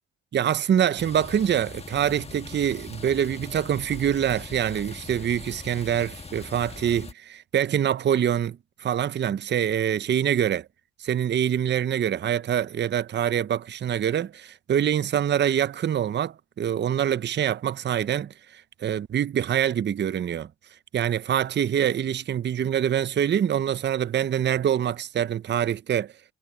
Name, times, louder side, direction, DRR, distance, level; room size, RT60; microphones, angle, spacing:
voice 1, 0.3-10.7 11.0-20.5 20.9-26.1, right 9 dB, 35° right, 0.6 m, -25 dB
sound 1, 1.0-7.1, left 3 dB, 20° left, 1.4 m, -41 dB
cardioid pair, 90°, 30 cm